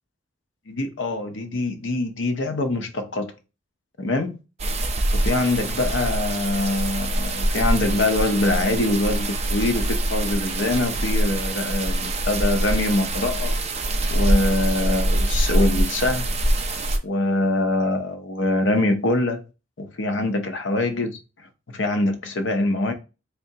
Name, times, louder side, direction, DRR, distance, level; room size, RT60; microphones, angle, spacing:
voice 1, 0.7-3.3 4.0-4.3 5.1-13.6 14.1-16.3 17.0-19.4 19.8-21.2 21.7-22.9, left 2 dB, 85° left, 0.7 m, -24 dB
sound 1, 4.6-17.0, right 1 dB, 35° right, 0.5 m, -24 dB
3.7 x 3.4 x 2.8 m
head